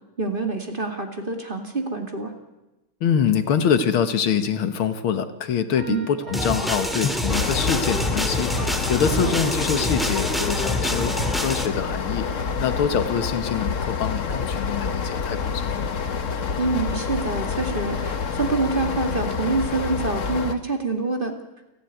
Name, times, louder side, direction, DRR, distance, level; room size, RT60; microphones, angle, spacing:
voice 1, 0.2-2.3 5.9-6.1 9.2-9.3 16.6-21.3, right 3 dB, 25° right, 4 dB, 2.3 m, -26 dB
voice 2, 3.0-8.6 8.9-12.3 12.6-15.9, left 7 dB, 80° left, 10 dB, 2.1 m, -24 dB
sound 1, 5.8-8.3, right 3 dB, 40° right, 7.1 m, -40 dB
sound 2, 6.3-11.7, equal, ahead, 1.6 m, -26 dB
sound 3, 7.3-20.5, left 5 dB, 45° left, 1.3 m, -27 dB
29.5 x 12.0 x 9.4 m, 1.0 s
omnidirectional pair, 2.3 m